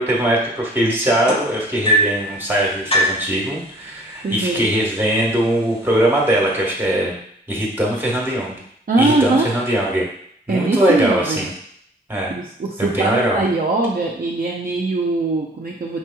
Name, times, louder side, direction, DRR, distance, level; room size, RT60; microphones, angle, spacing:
voice 1, 0.0-7.2 7.5-8.6 9.0-10.1 10.5-11.5 12.1-12.3 12.8-13.4, right 1 dB, 10° right, -3 dB, 1.3 m, -20 dB
sound 1, 1.3-2.3 2.9-3.3 4.3-4.4 4.8-5.2 5.9-6.0, right 1 dB, 30° left, 0.7 m, -19 dB
voice 2, 4.2-4.7 8.9-9.5 10.5-11.5 12.3-16.0, right 3 dB, 50° right, -3 dB, 0.6 m, -21 dB
4.7 x 2.9 x 2.3 m, 0.65 s
cardioid pair, 45°, 19 cm